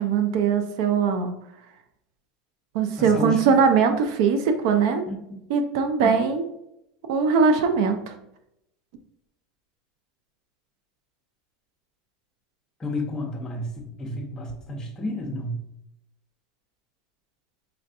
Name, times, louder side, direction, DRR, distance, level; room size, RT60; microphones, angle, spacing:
voice 1, 0.0-1.3 2.7-5.0 5.5-6.4 7.1-8.1, right 5 dB, 70° right, 7 dB, 0.5 m, -21 dB
voice 2, 3.0-3.5 5.1-5.4 6.0-6.1 12.8-15.6, left 1 dB, 20° left, 1 dB, 0.8 m, -31 dB
4.3 x 2.6 x 2.6 m, 0.81 s
supercardioid pair, 120°, 3 cm